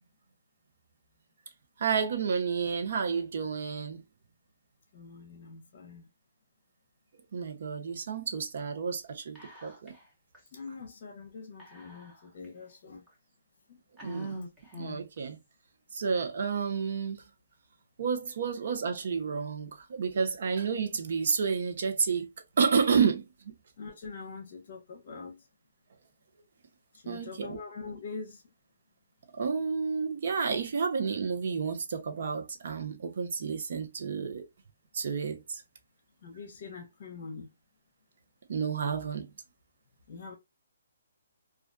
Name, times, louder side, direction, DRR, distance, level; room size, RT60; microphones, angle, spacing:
voice 1, 1.8-4.0 7.3-9.9 14.0-14.4 14.8-15.4 15.9-17.2 18.0-22.3 22.6-23.2 27.1-27.6 29.3-34.4 34.9-35.6 38.5-39.3, right 6 dB, 60° right, 0.6 m, -30 dB
voice 2, 4.9-6.1 10.5-13.1 13.7-13.8 23.8-25.5 26.9-28.4 36.2-37.5 40.1-40.3, left 4 dB, 45° left, 0.7 m, -44 dB
Whispering, 9.3-10.1 10.3-10.4 11.6-12.4 13.1-13.2 14.0-15.2, right 1 dB, 10° right, 0.9 m, -42 dB
2.3 x 2.2 x 2.4 m
hypercardioid pair, 155°, 0 cm